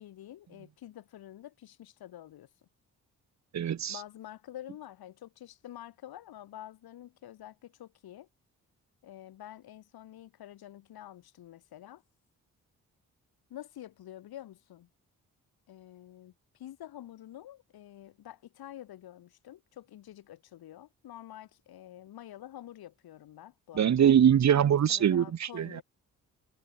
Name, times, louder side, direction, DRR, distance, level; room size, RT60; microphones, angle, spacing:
voice 1, 0.0-2.5 3.9-8.3 9.0-12.0 13.5-14.9 15.7-24.1 24.5-25.8, left 12 dB, 80° left, 5.6 m, -48 dB
voice 2, 3.5-3.9 23.8-25.8, right 9 dB, 50° right, 0.9 m, -23 dB
supercardioid pair, 50°, 37 cm